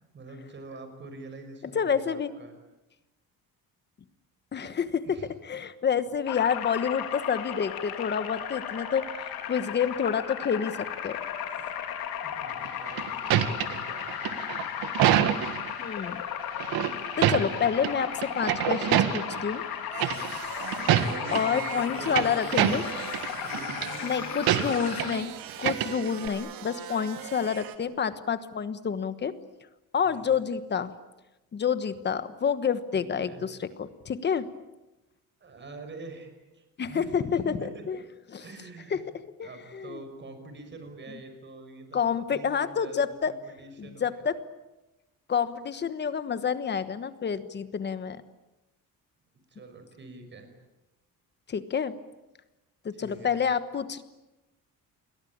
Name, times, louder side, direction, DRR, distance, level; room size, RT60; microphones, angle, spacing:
voice 1, 0.1-2.5 5.0-5.3 12.2-14.1 17.1-17.5 21.0-22.5 23.4-25.1 30.0-30.4 32.9-33.4 35.4-37.2 37.5-37.8 38.4-39.0 39.4-44.3 49.5-50.5 52.9-53.4, right 2 dB, 30° right, 7 dB, 5.6 m, -45 dB
voice 2, 1.7-2.3 4.5-5.2 5.4-11.2 15.8-16.2 17.2-19.6 21.3-22.9 24.0-25.3 25.6-29.3 29.9-30.9 31.5-34.5 36.8-38.0 38.3-38.4 38.9-39.0 39.4-40.0 41.9-43.3 43.8-44.4 45.3-48.2 51.5-51.9 52.8-54.0, left 7 dB, 30° left, 12 dB, 1.3 m, -28 dB
sound 1, 6.3-25.2, left 9 dB, 85° left, 3.7 m, -35 dB
sound 2, 12.6-15.7 16.6-17.9 18.2-19.4 20.0-20.4 20.7-21.4 21.8-23.3 23.5-23.9 24.5-25.2 25.5-26.3, right 11 dB, 90° right, 1.9 m, -26 dB
sound 3, 19.9-27.8, right 10 dB, 70° right, 2.8 m, -40 dB
29.5 x 22.5 x 8.8 m, 1.0 s
cardioid pair, 175°, 35 cm